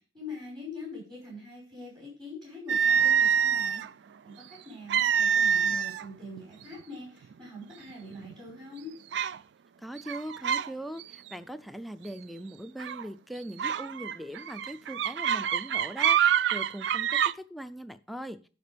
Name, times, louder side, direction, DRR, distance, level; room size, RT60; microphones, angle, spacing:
voice 1, 0.1-3.8 4.2-8.9, left 2 dB, 25° right, -5 dB, 4.9 m, -43 dB
sound 1, 2.7-3.9 4.9-6.0 6.4-6.6 7.3-7.4 7.9-8.3 9.1-9.4 10.0-10.7 11.0-11.3 12.8-13.0 13.6-17.3, right 8 dB, 70° right, 0.3 m, -26 dB
voice 2, 9.8-18.5, right 1 dB, ahead, 10 dB, 0.4 m, -40 dB
11.0 x 5.1 x 5.1 m, 0.38 s
head